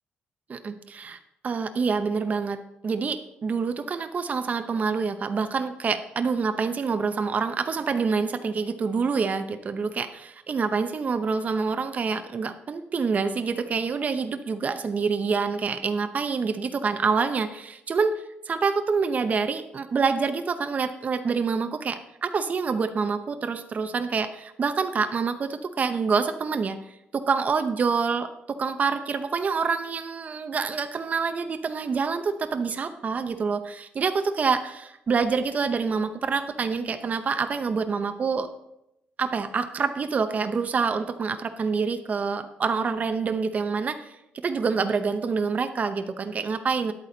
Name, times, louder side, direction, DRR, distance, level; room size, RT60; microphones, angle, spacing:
voice 1, 0.5-1.2 1.4-2.6 2.8-38.5 39.2-44.2 44.4-46.9, right 5 dB, 40° right, 8 dB, 0.7 m, -27 dB
10.5 x 8.5 x 3.9 m, 0.87 s
cardioid pair, 100°, 4 cm